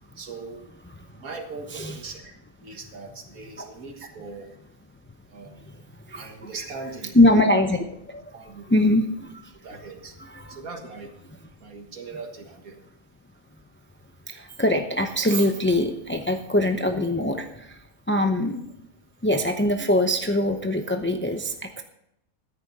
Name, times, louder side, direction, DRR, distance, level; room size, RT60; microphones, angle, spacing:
voice 1, 0.2-0.7 1.1-4.6 5.3-5.8 6.1-7.2 8.3-8.7 9.6-10.2 10.5-11.2 11.6-12.8, right 4 dB, 85° right, 5 dB, 2.1 m, -40 dB
voice 2, 5.5-6.5 7.1-8.3 8.7-9.6 10.2-10.6 14.3-18.7 19.2-21.8, left 1 dB, 15° left, 5 dB, 0.4 m, -23 dB
14.0 x 10.0 x 4.1 m, 0.81 s
omnidirectional pair, 1.5 m